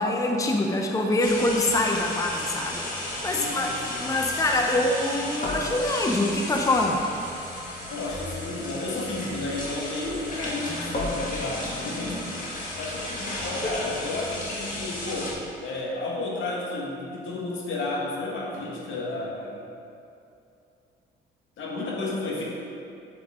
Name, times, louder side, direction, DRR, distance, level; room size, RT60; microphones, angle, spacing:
voice 1, 0.0-3.7 4.0-7.0 10.7-11.1, left 2 dB, 15° left, 2 dB, 0.7 m, -25 dB
sound 1, 1.2-15.3, left 1 dB, 45° left, 2.0 m, -33 dB
voice 2, 3.3-4.1 7.9-12.2 12.8-19.6 21.6-22.4, left 2 dB, 75° left, -3 dB, 1.7 m, -32 dB
7.7 x 6.9 x 3.8 m, 2.6 s
cardioid pair, 90°, 20 cm